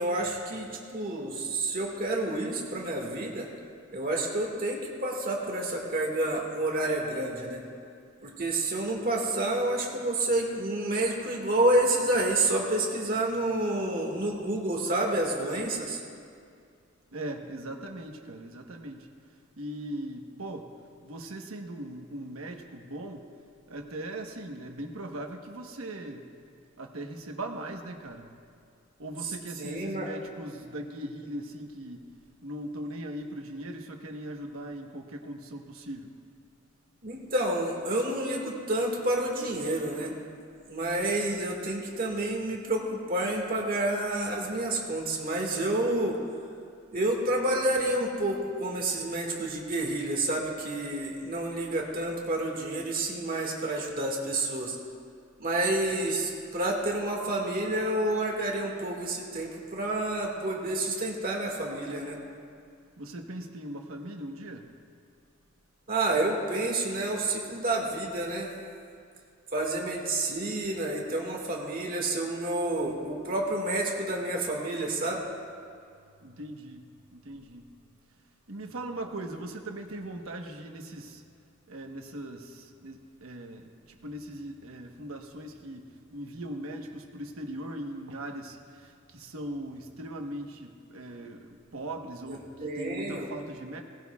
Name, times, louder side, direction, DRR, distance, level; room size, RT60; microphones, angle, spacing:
voice 1, 0.0-3.5 3.9-7.6 8.2-16.0 29.6-30.1 37.0-40.2 40.7-46.2 46.9-54.8 55.4-62.2 65.9-68.5 69.5-75.2 92.3-93.3, right 1 dB, 45° right, 0 dB, 1.8 m, -29 dB
voice 2, 17.1-19.1 19.6-20.7 21.0-23.3 23.7-26.3 26.8-28.3 29.0-32.1 32.4-36.1 63.0-64.7 76.2-76.8 77.1-77.7 78.5-81.2 81.7-83.7 84.0-93.8, right 1 dB, 85° right, 3 dB, 1.1 m, -39 dB
19.0 x 16.0 x 2.3 m, 2.3 s
head